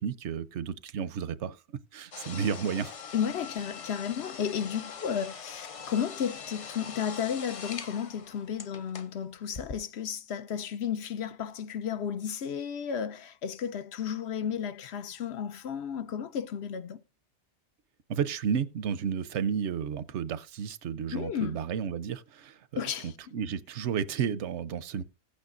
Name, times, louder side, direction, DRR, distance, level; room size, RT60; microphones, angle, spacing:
voice 1, 0.0-1.6 1.9-2.9 18.1-25.0, right 7 dB, 80° right, 1.0 m, -32 dB
sound 1, 2.1-9.1 9.5-9.7, left 6 dB, 40° left, 0.5 m, -43 dB
voice 2, 3.1-17.0 21.1-21.6 22.8-23.3, left 8 dB, 70° left, 0.9 m, -33 dB
16.5 x 8.8 x 2.5 m
omnidirectional pair, 1.2 m